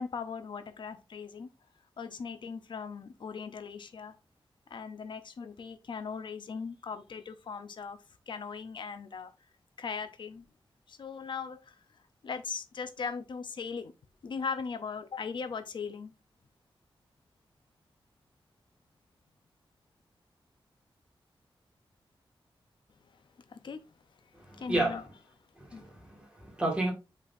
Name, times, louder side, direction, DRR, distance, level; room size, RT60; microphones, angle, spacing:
voice 1, 0.0-1.5 2.0-4.2 4.7-8.0 8.3-9.3 9.8-10.4 10.9-11.8 12.2-13.9 14.2-16.1 23.5-23.8 24.5-25.0 25.7-25.9, left 5 dB, 60° left, 0.7 m, -39 dB
voice 2, 24.5-25.0 25.6-26.9, right 2 dB, 10° right, 2.1 m, -31 dB
8.2 x 4.2 x 2.7 m
wide cardioid pair, 175°, 9 cm